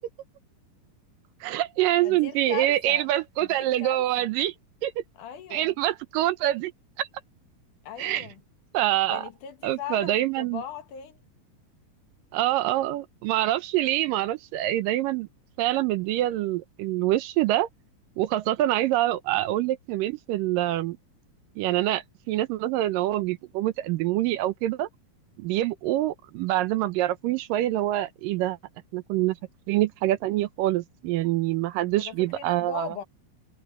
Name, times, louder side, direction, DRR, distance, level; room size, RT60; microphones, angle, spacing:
voice 1, 1.4-4.5 4.8-4.9 5.5-6.7 7.0-7.1 8.0-8.3 8.7-9.3 9.6-10.6 12.3-15.3 15.6-17.7 18.2-21.0 21.6-24.9 25.4-28.6 28.9-29.4 29.7-32.9, right 14 dB, 75° right, 2.3 m, -25 dB
voice 2, 2.0-3.1 3.4-4.3 5.2-5.7 7.8-8.4 9.1-11.2 32.0-33.0, left 9 dB, 65° left, 2.6 m, -39 dB
omnidirectional pair, 4.1 m